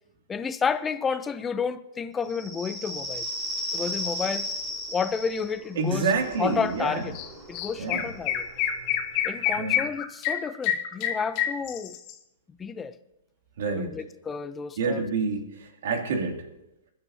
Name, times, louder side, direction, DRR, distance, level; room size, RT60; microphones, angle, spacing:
voice 1, 0.3-3.3 3.7-4.5 4.9-6.1 6.4-7.2 7.5-8.5 9.2-12.0 12.6-12.9 13.7-15.0, left 6 dB, 15° left, 0.7 m, -30 dB
sound 1, 2.2-9.5, equal, 20° right, 5.3 m, -36 dB
voice 2, 5.8-7.0 7.8-8.0 9.6-9.8 13.6-13.9 14.8-16.4, right 4 dB, 65° right, 2.6 m, -28 dB
Chirp tweet, 7.1-7.3 7.5-12.1, left 10 dB, 40° left, 1.4 m, -27 dB
21.5 x 11.0 x 2.8 m
hypercardioid pair, 120°, 0 cm